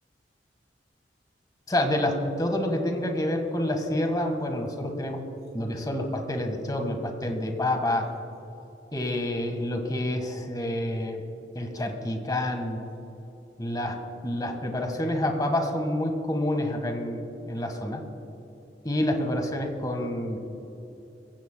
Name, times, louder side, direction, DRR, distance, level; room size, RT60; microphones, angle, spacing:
voice 1, 1.7-5.2 5.5-8.1 8.9-11.2 11.5-12.9 13.6-14.0 14.2-18.0 18.8-20.4, left 1 dB, 25° left, 4 dB, 1.5 m, -28 dB
23.0 x 15.5 x 2.2 m, 3.0 s
head